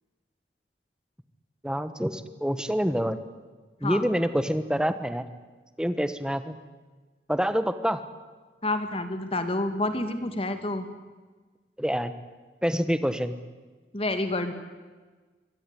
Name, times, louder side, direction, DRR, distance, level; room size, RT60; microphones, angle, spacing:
voice 1, 1.6-3.2 3.8-5.3 5.8-6.6 7.3-8.0 11.8-12.1 12.6-13.4, equal, 5° right, 11 dB, 1.2 m, -26 dB
voice 2, 8.6-10.9 13.9-14.5, left 2 dB, 30° left, 9 dB, 2.2 m, -28 dB
24.5 x 17.5 x 9.9 m, 1.4 s
head